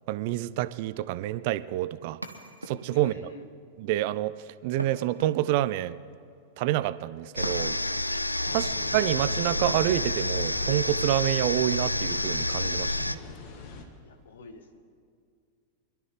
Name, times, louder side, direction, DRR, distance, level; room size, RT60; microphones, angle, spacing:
voice 1, 0.1-2.2 2.7-3.1 3.9-4.3 4.6-5.9 6.6-7.7 8.5-13.2, right 14 dB, 50° right, 16 dB, 0.4 m, -27 dB
sound 1, 2.2-3.2 4.8-5.8 7.4-8.1 9.7-10.3, right 1 dB, 85° right, 1.0 m, -40 dB
voice 2, 2.9-3.5 8.5-8.7 14.0-14.8, left 4 dB, 65° left, 7 dB, 1.3 m, -48 dB
sound 2, 7.4-13.2, left 1 dB, 85° left, 0.3 m, -29 dB
sound 3, 8.4-13.8, left 3 dB, 45° left, 1.5 m, -42 dB
25.0 x 12.0 x 3.3 m, 2.2 s
figure-of-eight pair, 90°, 0 cm